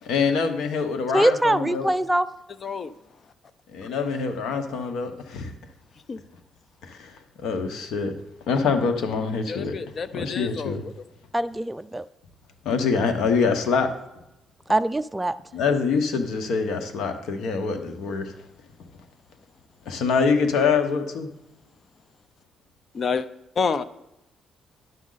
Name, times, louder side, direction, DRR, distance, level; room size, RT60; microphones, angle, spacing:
voice 1, 0.0-1.9 3.7-5.5 6.8-8.2 8.5-9.7 10.1-10.8 12.6-13.9 15.5-18.3 19.9-21.3, left 5 dB, 80° left, 6 dB, 1.1 m, -25 dB
voice 2, 1.1-2.3 11.3-12.0 14.7-15.3, right 1 dB, 10° right, 11 dB, 0.3 m, -22 dB
voice 3, 9.5-10.9 22.9-23.3 23.6-23.8, left 5 dB, 45° left, 14 dB, 0.6 m, -28 dB
11.0 x 7.4 x 4.0 m, 0.87 s
cardioid pair, 90°, 0 cm